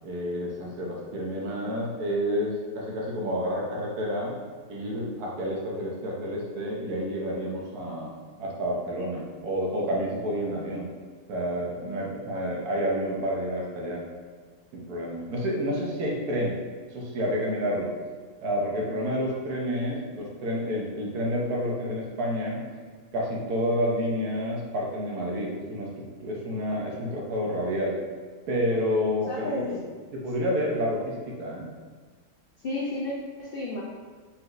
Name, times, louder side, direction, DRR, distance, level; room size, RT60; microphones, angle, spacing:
voice 1, 0.0-4.3 4.7-8.1 8.4-10.9 11.3-14.0 14.7-16.6 16.9-17.9 18.4-22.6 23.1-27.9 28.5-29.6 30.1-31.7, equal, 80° right, -2 dB, 1.3 m, -29 dB
voice 2, 29.3-29.8 32.6-33.8, left 2 dB, 65° left, -4 dB, 0.5 m, -32 dB
4.2 x 4.1 x 2.5 m, 1.5 s
omnidirectional pair, 1.6 m